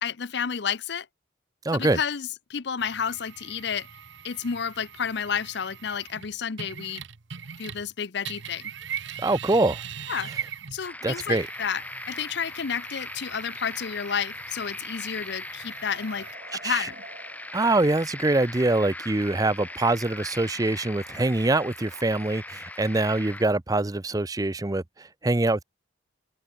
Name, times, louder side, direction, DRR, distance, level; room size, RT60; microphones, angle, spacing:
voice 1, 0.0-1.1 1.7-3.9 4.2-7.0 7.6-8.7 10.1-10.3 10.7-16.3 16.5-17.0, left 7 dB, 60° left, 0.7 m, -31 dB
voice 2, 1.6-2.0 9.2-9.8 11.0-11.5 16.6-16.9 17.5-25.6, right 2 dB, 20° right, 0.6 m, -24 dB
sound 1, 2.8-7.9 8.2-16.3, right 8 dB, 70° right, 1.0 m, -41 dB
sound 2, 10.8-23.5, left 2 dB, 10° left, 1.4 m, -40 dB
sound 3, 13.5-21.3, right 3 dB, 40° right, 6.9 m, -53 dB
open air
head